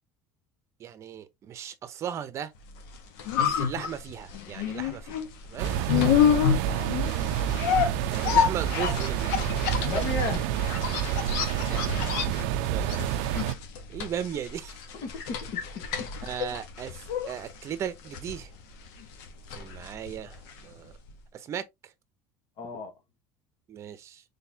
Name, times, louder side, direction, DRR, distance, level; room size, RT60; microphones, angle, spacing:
voice 1, 0.8-2.5 3.4-5.8 7.7-9.4 11.6-13.4 13.9-14.8 16.2-18.5 19.5-21.0 21.3-21.9 23.7-24.2, right 9 dB, 35° right, 0.7 m, -37 dB
sound 1, 2.8-20.8 21.1-21.2, left 8 dB, 75° left, 1.2 m, -29 dB
sound 2, 5.6-13.6, right 11 dB, 80° right, 0.4 m, -28 dB
voice 2, 6.6-6.9 9.8-10.5 14.9-16.1 22.6-22.9, left 4 dB, 55° left, 1.5 m, -35 dB
4.0 x 3.4 x 2.8 m
cardioid pair, 145°, 8 cm